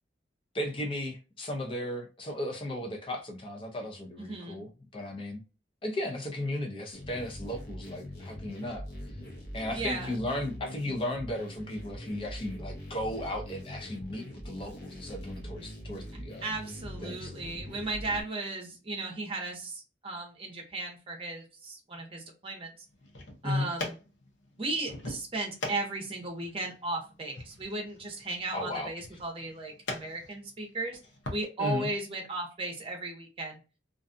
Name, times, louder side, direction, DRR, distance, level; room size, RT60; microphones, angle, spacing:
voice 1, 0.5-5.4 5.8-8.8 9.5-16.5 17.0-17.3 23.4-23.7 28.5-28.9 31.6-31.9, left 1 dB, 30° left, 0.6 m, -35 dB
voice 2, 4.2-4.6 9.7-10.2 16.4-22.7 23.4-23.9 24.6-31.0 31.3-33.6, right 2 dB, 30° right, 0.8 m, -36 dB
sound 1, 6.9-18.2, equal, 60° left, 0.8 m, -42 dB
sound 2, 22.9-31.4, left 2 dB, 90° left, 0.7 m, -43 dB
2.5 x 2.3 x 2.5 m
head